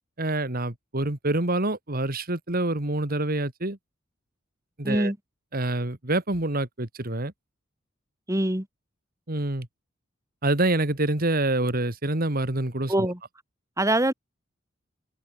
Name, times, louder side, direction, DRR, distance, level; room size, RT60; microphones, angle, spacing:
voice 1, 0.2-3.8 4.8-5.1 5.5-7.3 9.3-9.7 10.4-13.1, right 2 dB, 50° right, 2.6 m, -26 dB
voice 2, 4.8-5.2 8.3-8.7 12.9-13.2 13.8-14.1, right 1 dB, 15° right, 2.9 m, -23 dB
head